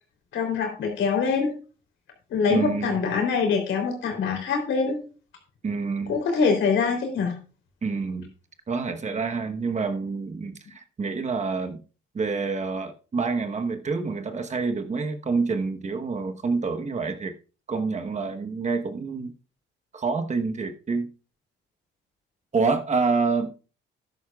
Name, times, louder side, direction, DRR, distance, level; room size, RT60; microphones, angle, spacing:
voice 1, 0.3-1.5 2.3-5.0 6.1-7.4, left 5 dB, 75° left, 3.4 m, -24 dB
voice 2, 2.5-3.0 5.6-6.1 7.8-8.3 8.7-11.8 12.1-17.3 17.7-19.3 19.9-21.1 22.5-23.5, right 4 dB, 35° right, 1.1 m, -27 dB
12.5 x 10.5 x 2.4 m
cardioid pair, 90°, 20 cm